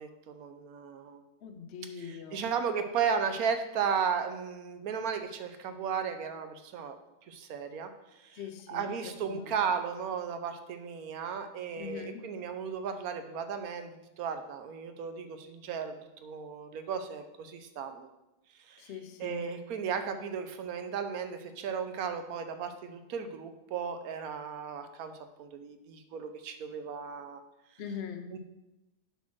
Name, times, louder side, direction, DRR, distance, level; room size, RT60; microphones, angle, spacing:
voice 1, 0.0-1.2 2.0-7.0 7.3-7.9 8.2-8.4 8.7-18.1 18.7-18.9 19.2-25.1 25.4-27.4 28.3-28.4, right 6 dB, 70° right, 8 dB, 1.2 m, -35 dB
voice 2, 1.4-2.5 8.3-9.7 11.8-12.3 18.8-19.5 27.8-28.3, left 7 dB, 55° left, 6 dB, 0.9 m, -42 dB
7.9 x 4.3 x 6.1 m, 0.98 s
omnidirectional pair, 1.7 m